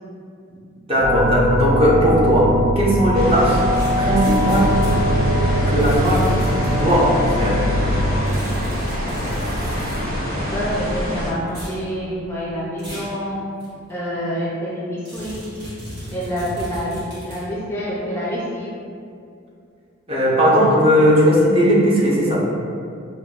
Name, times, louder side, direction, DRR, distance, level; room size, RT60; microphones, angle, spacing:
voice 1, 0.9-3.6 4.0-4.7 5.7-7.6 20.1-22.4, equal, 30° right, -6 dB, 0.7 m, -17 dB
sound 1, 1.0-8.2, equal, 75° left, 0.4 m, -21 dB
sound 2, 3.1-11.3, equal, 85° right, 1.0 m, -25 dB
sound 3, 3.7-5.0 5.8-6.7 8.3-10.0 11.5-11.8 12.8-13.2 13.6-13.7 15.1-17.4, equal, 55° right, 1.4 m, -35 dB
voice 2, 10.5-13.4 13.9-15.5 16.1-18.7, equal, 10° left, -7 dB, 0.4 m, -27 dB
5.8 x 2.2 x 2.4 m, 2.5 s
head